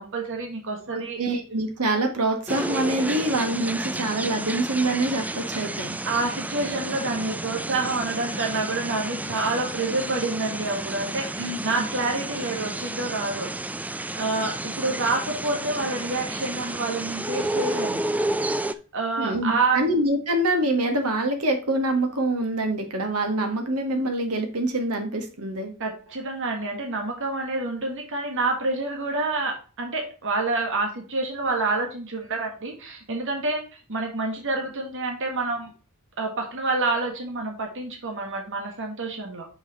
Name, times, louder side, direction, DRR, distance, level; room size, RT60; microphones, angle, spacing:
voice 1, 0.0-1.2 6.1-13.5 13.9-18.0 18.9-19.8 25.8-33.6 33.9-35.7 36.2-39.5, right 3 dB, 60° right, 2 dB, 1.6 m, -28 dB
voice 2, 0.9-6.0 11.4-11.6 19.2-25.7, right 1 dB, 85° right, 4 dB, 1.7 m, -25 dB
sound 1, 2.5-18.7, right 2 dB, 5° right, 0.3 m, -31 dB
6.1 x 5.0 x 4.1 m, 0.36 s
head